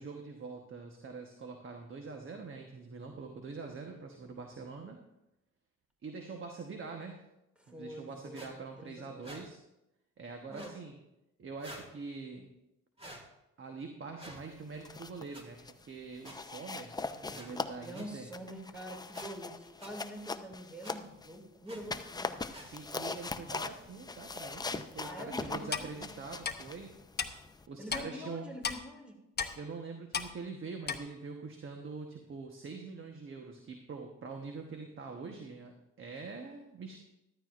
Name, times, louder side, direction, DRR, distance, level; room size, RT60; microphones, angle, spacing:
voice 1, 0.0-5.0 6.0-7.2 7.7-9.6 10.2-11.0 11.4-12.5 13.6-17.0 17.3-18.3 22.6-26.9 27.7-28.4 29.5-37.0, right 4 dB, 40° right, 3 dB, 1.2 m, -44 dB
voice 2, 7.6-8.5 8.8-9.3 17.0-22.3 25.0-25.9 27.8-29.2, equal, 5° right, 2 dB, 2.4 m, -46 dB
sound 1, 8.3-8.5 9.2-9.4 10.5-10.8 11.6-11.9 13.0-13.2 14.2-14.4 15.3-15.4 16.2-16.4 17.3-17.5 17.9-18.1 19.1-19.3 19.8-19.9 20.8-21.0 21.7-21.8 22.5-22.7, right 1 dB, 20° right, 1.9 m, -48 dB
sound 2, 14.6-15.3 15.6-15.9 16.3-21.4 21.8-27.7, left 3 dB, 15° left, 0.5 m, -41 dB
Clock, 25.7-25.9 26.4-26.5 27.2-27.3 27.9-28.0 28.6-28.8 29.4-29.5 30.1-30.3 30.9-31.0, left 6 dB, 35° left, 0.9 m, -33 dB
13.5 x 12.5 x 2.5 m, 0.91 s
cardioid pair, 90°, 30 cm